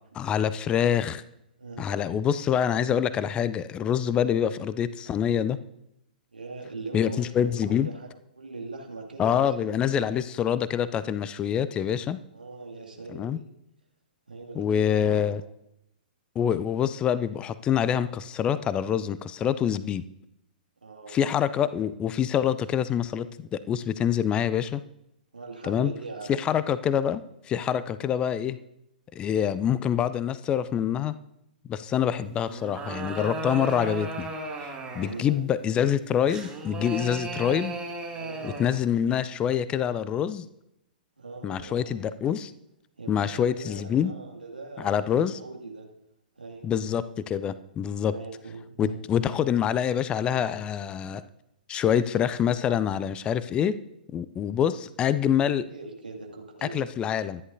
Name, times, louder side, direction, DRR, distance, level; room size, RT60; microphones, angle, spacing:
voice 1, 0.1-1.2 1.8-5.6 6.9-7.9 9.2-12.2 13.1-13.4 14.6-15.4 16.4-20.0 21.1-24.8 25.6-25.9 26.3-28.6 29.2-31.1 31.7-34.3 34.6-37.7 38.4-40.5 41.4-42.5 43.1-44.1 44.8-45.4 46.6-48.1 48.8-51.2 51.7-53.8 54.1-55.7 56.6-57.4, left 9 dB, 20° left, 15 dB, 0.4 m, -26 dB
voice 2, 1.6-2.0 6.3-8.1 8.3-10.2 12.3-13.5 14.3-15.5 20.8-21.3 25.3-26.5 34.8-35.4 38.1-38.7 41.2-42.1 43.0-45.9 46.4-46.7 48.1-49.0 55.7-56.9, right 3 dB, 80° right, 1 dB, 2.5 m, -41 dB
sound 1, 32.4-35.3 36.3-38.9, right 3 dB, 15° right, 2.4 m, -35 dB
24.0 x 11.0 x 2.7 m, 0.81 s
figure-of-eight pair, 110°, 5 cm